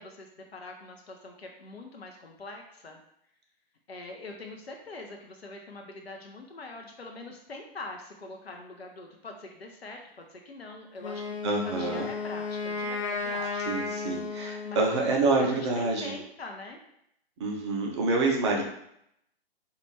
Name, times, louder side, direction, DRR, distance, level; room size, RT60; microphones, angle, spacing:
voice 1, 0.0-3.0 3.9-14.4 14.6-14.9 15.4-16.8, left 2 dB, 75° left, 2 dB, 0.7 m, -43 dB
Wind instrument woodwind instrument, 11.0-15.1, left 4 dB, 30° left, 0.4 m, -34 dB
voice 2, 11.4-12.1 13.7-16.1 17.4-18.6, right 3 dB, 25° right, 0 dB, 0.6 m, -27 dB
4.3 x 2.5 x 3.2 m, 0.74 s
figure-of-eight pair, 130°, 31 cm